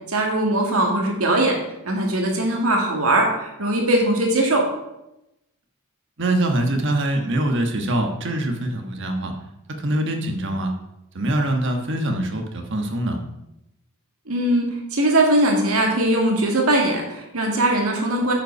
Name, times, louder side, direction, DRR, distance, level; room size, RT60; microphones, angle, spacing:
voice 1, 0.1-1.6 1.8-4.7 14.3-18.3, right 1 dB, 75° right, 0 dB, 1.9 m, -20 dB
voice 2, 6.2-9.3 9.8-10.7 11.1-13.2, right 1 dB, 55° right, 4 dB, 1.3 m, -23 dB
8.8 x 5.6 x 5.8 m, 0.88 s
head